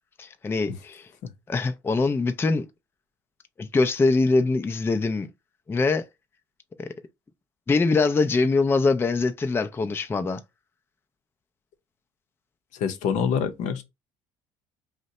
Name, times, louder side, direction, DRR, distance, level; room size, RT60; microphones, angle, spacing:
voice 1, 0.2-1.1 1.5-2.7 3.6-5.3 5.7-6.1 6.8-6.9 7.7-10.4, left 3 dB, 15° left, 0.4 m, -23 dB
voice 2, 12.7-13.8, left 7 dB, 70° left, 0.6 m, -26 dB
2.7 x 2.1 x 4.0 m
supercardioid pair, 80°, 13 cm